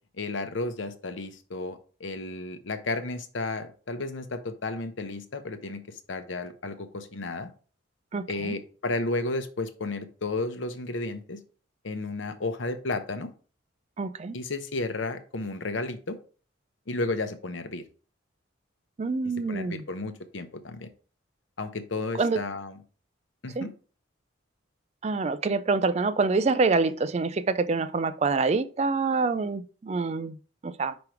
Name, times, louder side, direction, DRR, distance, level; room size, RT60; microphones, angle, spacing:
voice 1, 0.2-7.5 8.3-11.4 11.8-13.3 14.3-16.2 16.9-17.8 19.2-20.9 21.6-22.8 23.4-23.7, left 2 dB, 75° left, 0.8 m, -33 dB
voice 2, 8.1-8.5 14.0-14.4 19.0-19.8 22.2-22.4 23.6-23.7 25.0-30.4 30.6-30.9, right 4 dB, 35° right, 0.4 m, -26 dB
5.2 x 4.7 x 4.6 m
head